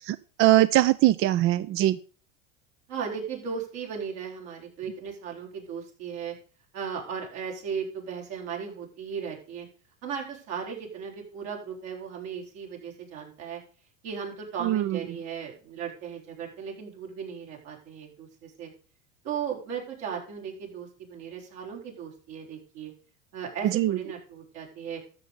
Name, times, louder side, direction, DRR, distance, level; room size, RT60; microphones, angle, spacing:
voice 1, 0.1-2.0 14.6-15.0 23.7-24.0, right 14 dB, 35° right, 16 dB, 0.5 m, -22 dB
voice 2, 2.9-6.3 6.7-9.7 10.0-13.6 14.0-18.7 19.2-22.9 23.3-25.0, right 7 dB, 65° right, -1 dB, 4.5 m, -36 dB
13.0 x 6.7 x 5.1 m, 0.40 s
hypercardioid pair, 85°, 39 cm